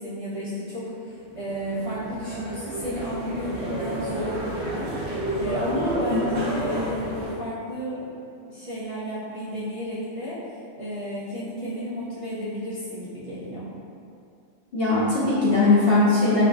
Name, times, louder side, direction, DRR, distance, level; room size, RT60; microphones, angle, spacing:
voice 1, 0.0-8.1 8.5-10.4 10.8-13.7, equal, 45° right, -12 dB, 0.4 m, -32 dB
sound 1, 1.3-7.3, right 1 dB, 65° right, 0.9 m, -31 dB
voice 2, 6.0-6.3 14.7-16.4, left 2 dB, 55° left, -9 dB, 0.9 m, -20 dB
3.6 x 2.6 x 2.4 m, 2.5 s
omnidirectional pair, 1.3 m